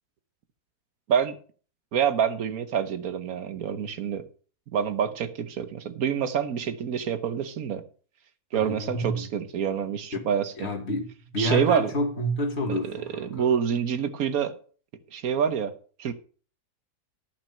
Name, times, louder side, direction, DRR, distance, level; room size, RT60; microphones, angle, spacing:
voice 1, 1.9-4.2 4.7-7.8 8.5-10.7 11.4-11.9 12.9-14.5 15.1-15.7 16.0-16.1, right 8 dB, 65° right, 1.3 m, -27 dB
voice 2, 8.5-9.3 10.6-11.1 11.3-13.5, right 1 dB, 45° left, 2.0 m, -29 dB
10.5 x 6.0 x 5.5 m
omnidirectional pair, 1.7 m